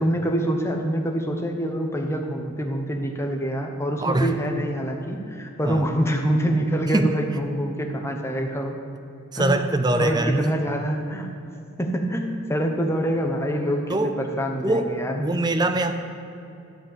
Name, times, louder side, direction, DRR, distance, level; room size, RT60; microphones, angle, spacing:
voice 1, 0.0-8.8 9.4-9.7 10.0-11.3 11.8-15.2, equal, 10° left, 2 dB, 0.9 m, -25 dB
voice 2, 4.0-4.3 5.6-5.8 6.9-7.1 9.3-10.4 13.9-14.2 14.6-14.9 15.2-15.9, right 2 dB, 20° right, 8 dB, 0.5 m, -22 dB
12.0 x 5.2 x 8.6 m, 2.7 s
head